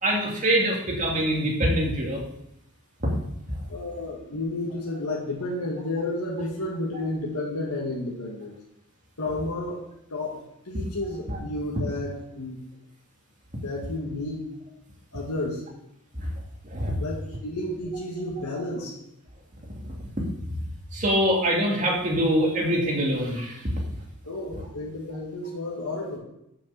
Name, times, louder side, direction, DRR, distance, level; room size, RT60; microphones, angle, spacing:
voice 1, 0.0-2.2 3.0-3.2 16.7-16.9 20.9-23.7, equal, 35° right, -1 dB, 2.4 m, -24 dB
voice 2, 3.7-8.6 9.2-9.8 10.1-12.6 13.6-14.4 15.1-15.6 17.0-19.0 24.3-26.2, left 2 dB, 85° left, -3 dB, 1.8 m, -31 dB
6.9 x 6.8 x 7.1 m, 0.81 s
head